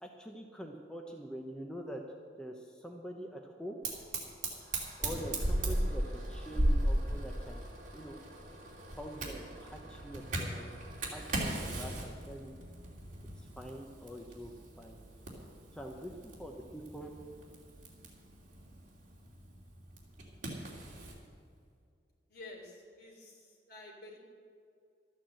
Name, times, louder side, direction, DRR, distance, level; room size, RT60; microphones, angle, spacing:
voice 1, 0.0-2.0 2.4-3.8 5.0-7.6 7.9-8.2 8.9-10.7 11.1-12.5 13.4-14.5 14.8-15.0 15.7-17.1, equal, 5° left, 1 dB, 0.8 m, -45 dB
Fire, 3.8-21.2, right 1 dB, 45° right, 2.8 m, -37 dB
voice 2, 22.3-24.2, left 2 dB, 55° left, -1 dB, 3.4 m, -50 dB
13.0 x 9.1 x 7.7 m, 2.2 s
head